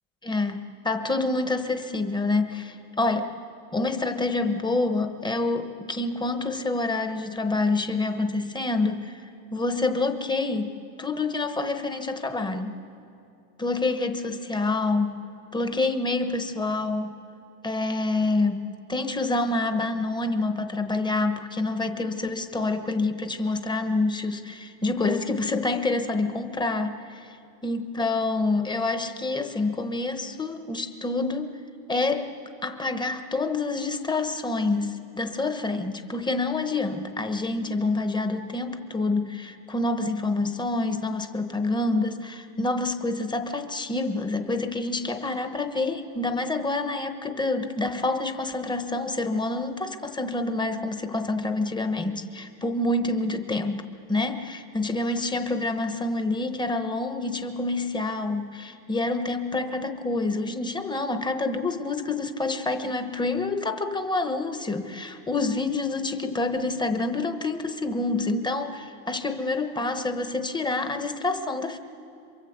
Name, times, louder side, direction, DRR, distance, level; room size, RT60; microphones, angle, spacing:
voice 1, 0.2-0.6 0.8-3.3 3.7-9.2 9.5-10.7 11.0-12.8 13.6-15.3 15.5-17.1 17.6-27.4 27.6-31.5 31.9-32.3 32.6-71.8, left 2 dB, 10° left, 7 dB, 1.0 m, -27 dB
27.0 x 23.5 x 8.1 m, 2.7 s
cardioid pair, 155°, 46 cm